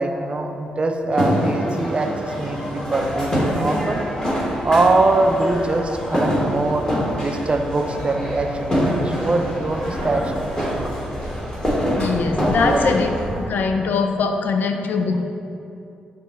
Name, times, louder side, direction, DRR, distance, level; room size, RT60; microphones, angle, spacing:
voice 1, 0.0-4.0 4.6-6.9 7.2-10.8 12.4-12.9, right 2 dB, 30° right, 4 dB, 0.4 m, -22 dB
sound 1, 1.1-13.2, equal, 25° left, 1.3 m, -25 dB
sound 2, 2.4-14.1, equal, 85° right, 0.9 m, -37 dB
sound 3, 8.5-13.5, equal, 15° right, 0.9 m, -35 dB
voice 2, 11.9-13.1 13.4-15.2, left 4 dB, 60° left, 5 dB, 0.3 m, -21 dB
5.2 x 2.1 x 4.2 m, 2.7 s
hypercardioid pair, 40°, 4 cm